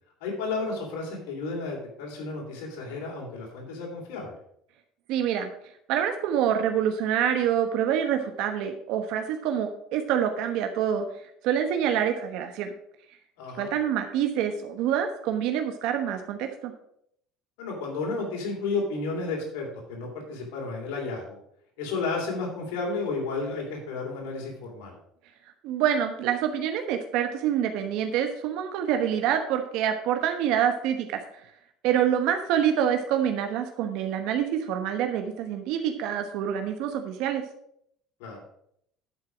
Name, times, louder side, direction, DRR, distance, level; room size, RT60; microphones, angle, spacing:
voice 1, 0.2-4.4 13.4-13.7 17.6-21.4 21.8-25.0 38.2-38.4, left 3 dB, 85° left, -1 dB, 3.1 m, -32 dB
voice 2, 5.1-5.5 5.9-11.0 11.4-12.7 13.6-16.7 25.6-31.2 31.8-37.4, right 9 dB, 70° right, 6 dB, 1.1 m, -26 dB
11.0 x 4.7 x 6.3 m, 0.71 s
cardioid pair, 120°, 0 cm